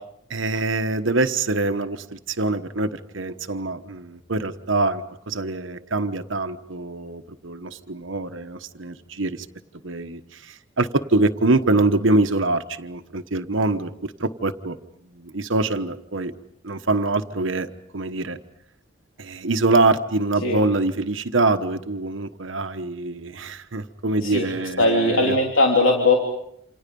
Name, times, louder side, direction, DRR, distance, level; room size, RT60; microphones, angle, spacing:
voice 1, 0.3-9.5 9.8-14.8 15.1-16.3 16.6-18.4 19.2-25.4, right 2 dB, 75° right, 8 dB, 1.2 m, -24 dB
voice 2, 24.2-26.1, left 2 dB, 85° left, 0 dB, 3.3 m, -19 dB
28.5 x 27.5 x 5.4 m, 0.71 s
head